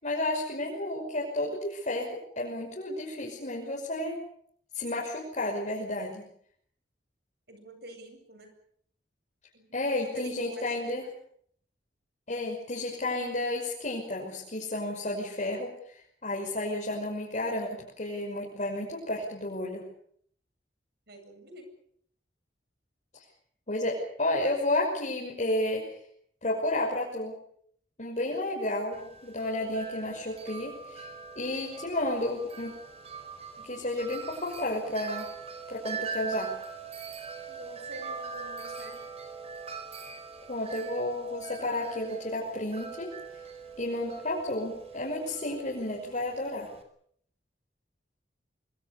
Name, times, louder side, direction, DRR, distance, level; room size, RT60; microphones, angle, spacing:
voice 1, 0.0-4.2 4.7-6.2 9.7-11.1 12.3-19.8 23.1-23.2 23.7-26.0 26.4-27.3 28.0-31.1 31.4-32.7 33.6-35.3 35.7-36.5 40.5-43.1 43.8-46.7, left 1 dB, 45° left, -3 dB, 5.8 m, -32 dB
voice 2, 7.5-8.5 9.5-9.7 9.9-10.9 21.1-21.7 37.5-39.0, right 1 dB, 65° right, 6 dB, 7.9 m, -46 dB
Wind chime, 28.9-46.8, right 5 dB, 35° right, 4.8 m, -42 dB
26.0 x 24.5 x 6.9 m, 0.64 s
head